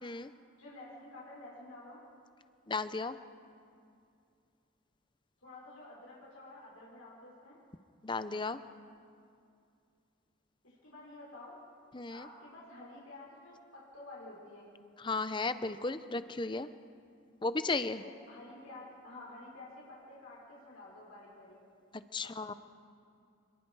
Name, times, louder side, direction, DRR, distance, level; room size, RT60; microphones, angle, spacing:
voice 1, 0.0-0.3 2.7-3.2 8.0-8.6 11.9-12.3 15.0-16.7 17.4-18.0 21.9-22.5, left 3 dB, 20° left, 12 dB, 0.6 m, -35 dB
voice 2, 0.6-2.0 5.4-7.6 10.6-11.6 12.1-14.7 18.0-21.6 22.2-22.3, left 2 dB, 85° left, -6 dB, 5.6 m, -50 dB
26.5 x 22.0 x 4.8 m, 2.4 s
head